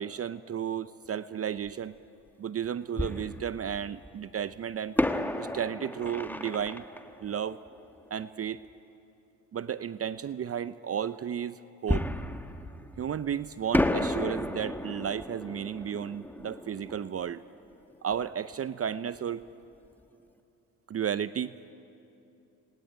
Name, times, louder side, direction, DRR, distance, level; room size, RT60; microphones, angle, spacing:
voice 1, 0.0-1.9 2.4-5.0 5.4-6.8 7.2-7.6 8.1-8.6 9.5-12.1 13.0-17.4 18.0-19.4 20.9-21.5, right 8 dB, 35° right, 15 dB, 0.7 m, -33 dB
Fireworks, 1.7-1.8 3.0-4.1 5.0-8.4 11.9-13.3 13.7-18.3 18.5-18.6 19.1-19.4, left 1 dB, 5° left, 1.4 m, -32 dB
29.5 x 20.0 x 9.4 m, 2.8 s
supercardioid pair, 75°, 41 cm